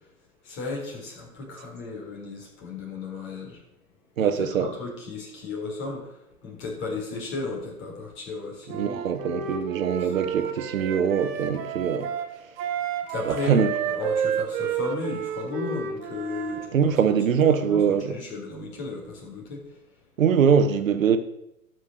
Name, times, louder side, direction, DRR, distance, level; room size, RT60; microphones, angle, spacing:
voice 1, 0.4-3.6 4.2-9.0 10.0-10.1 13.1-19.8, left 3 dB, 25° left, 4.3 m, -34 dB
voice 2, 4.2-4.7 8.7-12.1 13.3-13.7 16.7-18.2 20.2-21.2, right 7 dB, 65° right, 1.5 m, -22 dB
Wind instrument woodwind instrument, 8.7-16.7, right 8 dB, 25° right, 1.3 m, -31 dB
12.5 x 6.2 x 6.5 m
hypercardioid pair, 125°, 43 cm